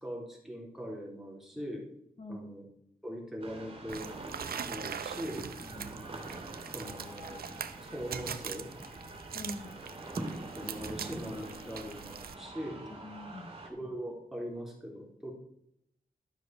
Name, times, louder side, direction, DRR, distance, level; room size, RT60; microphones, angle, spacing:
voice 1, 0.0-1.9 2.3-2.7 3.0-4.1 4.6-5.5 6.7-7.5 7.9-8.7 10.5-12.8 13.6-15.3, equal, ahead, -1 dB, 3.9 m, -41 dB
voice 2, 2.2-2.5 5.7-6.1 9.3-9.7 13.0-13.5, left 1 dB, 50° left, 3 dB, 2.6 m, -43 dB
sound 1, 3.4-13.7, right 2 dB, 35° right, 3.2 m, -44 dB
sound 2, 3.9-12.3, right 7 dB, 90° right, 0.8 m, -43 dB
13.0 x 6.5 x 6.1 m, 0.71 s
wide cardioid pair, 115°, 15 cm